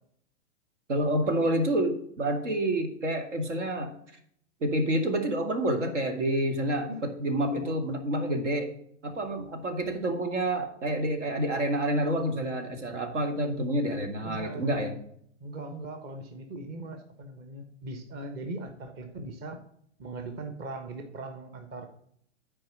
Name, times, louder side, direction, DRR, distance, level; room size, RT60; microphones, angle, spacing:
voice 1, 0.9-3.9 4.6-8.7 9.0-14.9, right 1 dB, 75° right, 6 dB, 2.3 m, -28 dB
voice 2, 7.4-7.8 14.2-14.7 15.4-19.6 20.0-22.0, right 2 dB, 25° right, 6 dB, 1.2 m, -40 dB
8.9 x 4.8 x 7.5 m, 0.67 s
hypercardioid pair, 120°, 36 cm